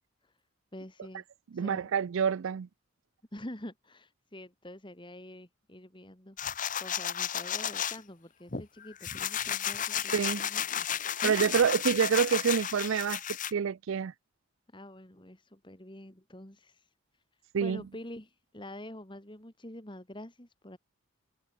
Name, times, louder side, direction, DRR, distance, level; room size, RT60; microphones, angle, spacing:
voice 1, 0.7-1.2 1.5-1.9 3.3-10.9 11.2-11.5 14.7-16.9 17.6-20.8, left 1 dB, 25° left, 2.6 m, -46 dB
voice 2, 1.5-2.7 10.1-10.4 11.2-13.2 13.5-14.1 17.5-17.8, right 7 dB, 75° right, 0.4 m, -27 dB
sound 1, 6.4-8.0 8.5-13.5, left 9 dB, 40° left, 1.1 m, -33 dB
head